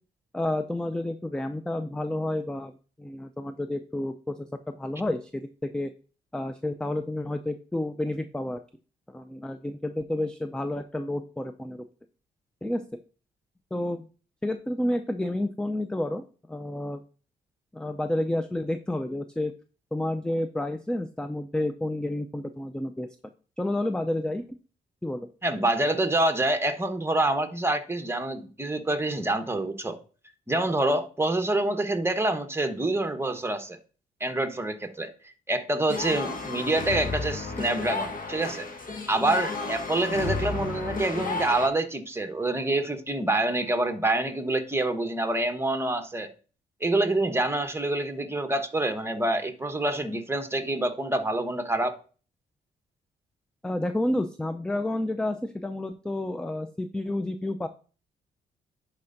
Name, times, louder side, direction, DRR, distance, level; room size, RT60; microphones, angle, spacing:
voice 1, 0.3-2.7 3.0-5.9 6.3-8.6 9.1-11.8 12.6-12.8 13.7-14.1 14.4-16.2 16.5-17.0 17.7-19.5 19.9-23.1 23.6-24.4 25.0-25.3 53.6-57.7, left 1 dB, 5° left, 0.4 m, -30 dB
voice 2, 25.4-30.0 30.5-33.8 34.2-38.7 39.1-46.3 46.8-52.0, right 2 dB, 15° right, 1.0 m, -26 dB
sound 1, 35.9-41.7, left 4 dB, 45° left, 1.3 m, -33 dB
10.5 x 4.4 x 2.6 m
supercardioid pair, 60°, 19 cm